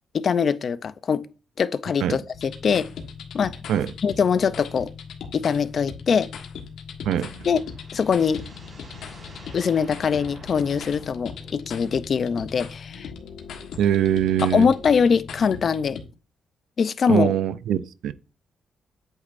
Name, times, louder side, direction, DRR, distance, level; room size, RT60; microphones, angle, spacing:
voice 1, 0.1-1.2 1.6-2.9 3.3-3.5 4.0-4.9 5.3-6.3 7.5-7.6 7.9-8.4 9.5-13.1 14.4-16.0 16.8-17.3, left 6 dB, 50° left, 0.5 m, -22 dB
sound 1, 2.3-16.0, left 6 dB, 85° left, 1.4 m, -39 dB
sound 2, 7.0-12.2, right 2 dB, 40° right, 3.8 m, -49 dB
voice 2, 13.8-14.7 17.1-18.1, right 10 dB, 85° right, 0.4 m, -22 dB
8.4 x 8.1 x 2.6 m
cardioid pair, 100°, 0 cm